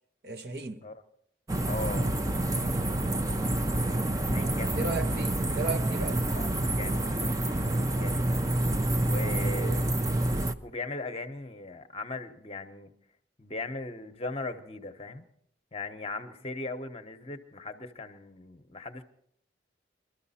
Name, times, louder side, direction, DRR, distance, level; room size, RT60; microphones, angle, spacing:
voice 1, 0.2-0.8 4.8-6.2 9.1-9.9, right 3 dB, 55° right, 0.9 m, -36 dB
sound 1, 1.5-10.5, right 1 dB, 20° right, 0.5 m, -28 dB
voice 2, 1.6-2.1 2.5-2.9 3.8-5.0 6.3-7.5 7.9-8.3 9.1-9.9 10.6-12.9 13.4-15.3 15.7-19.0, left 2 dB, 30° left, 0.9 m, -39 dB
22.0 x 13.0 x 4.2 m
head